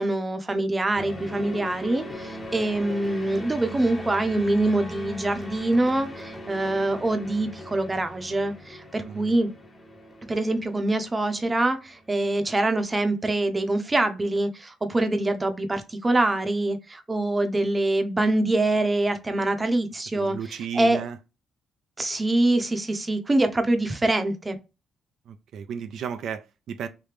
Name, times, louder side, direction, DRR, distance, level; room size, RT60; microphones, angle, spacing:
voice 1, 0.0-9.5 10.3-21.0 22.0-24.6, right 2 dB, 20° right, 0.6 m, -24 dB
sound 1, 1.0-12.3, equal, 20° left, 0.8 m, -40 dB
voice 2, 9.0-9.4 20.2-21.2 25.3-26.9, right 7 dB, 70° right, 0.4 m, -34 dB
3.2 x 2.7 x 3.3 m
cardioid pair, 90°, 0 cm